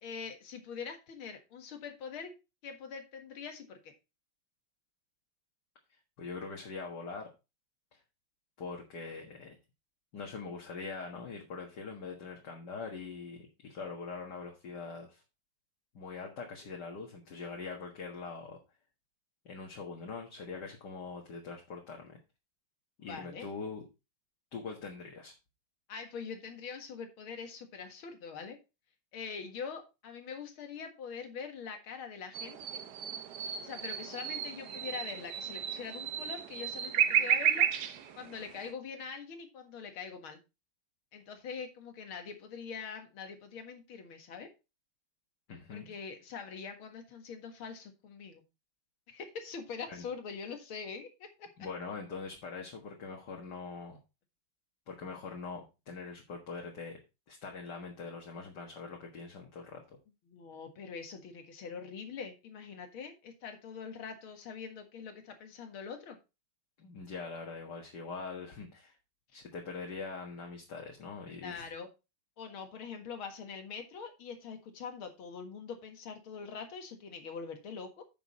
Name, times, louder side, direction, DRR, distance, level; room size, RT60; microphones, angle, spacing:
voice 1, 0.0-2.3 2.6-3.9 23.0-23.5 25.9-28.6 29.1-32.8 33.6-37.7 38.2-40.4 41.1-44.5 45.7-48.4 49.1-51.5 60.3-66.2 71.4-71.9 72.4-78.0, left 6 dB, 80° left, 6 dB, 2.5 m, -43 dB
voice 2, 6.2-7.3 7.9-8.0 8.6-9.6 10.1-15.2 15.9-18.6 19.5-22.2 23.0-23.8 24.5-25.3 45.5-45.9 49.9-50.0 51.6-54.0 54.9-57.0 57.3-59.8 66.8-69.0 69.3-71.7, left 4 dB, 55° left, 0 dB, 2.1 m, -43 dB
sound 1, 32.3-38.7, right 9 dB, 60° right, 1.4 m, -33 dB
9.6 x 6.3 x 4.1 m, 0.27 s
omnidirectional pair, 2.3 m